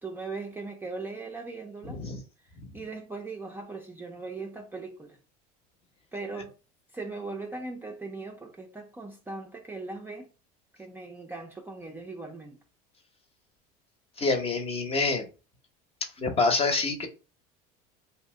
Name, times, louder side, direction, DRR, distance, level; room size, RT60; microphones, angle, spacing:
voice 1, 0.0-2.0 2.7-5.2 6.1-6.5 6.9-10.3 10.8-12.6, right 3 dB, 10° right, 0.5 m, -39 dB
voice 2, 1.9-2.2 2.6-2.7 14.2-15.3 16.2-17.1, left 3 dB, 30° left, 0.8 m, -26 dB
2.6 x 2.0 x 3.5 m
supercardioid pair, 95°, 20 cm